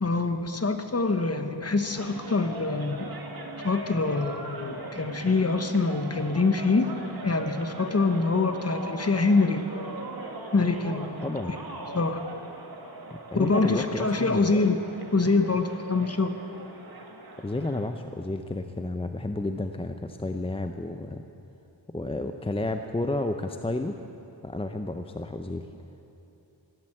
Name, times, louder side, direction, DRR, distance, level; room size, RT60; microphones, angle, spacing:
voice 1, 0.0-3.1 3.6-6.9 7.2-9.7 10.5-11.3 11.9-12.2 13.4-14.8 15.1-16.4, left 3 dB, 30° left, 7 dB, 1.2 m, -25 dB
sound 1, 1.7-17.9, right 2 dB, 50° right, 1.8 m, -40 dB
voice 2, 11.2-11.5 13.1-14.8 17.4-21.2 21.9-23.9 24.4-25.7, left 2 dB, 10° left, 6 dB, 0.6 m, -31 dB
16.0 x 11.0 x 7.9 m, 2.9 s
cardioid pair, 65°, 46 cm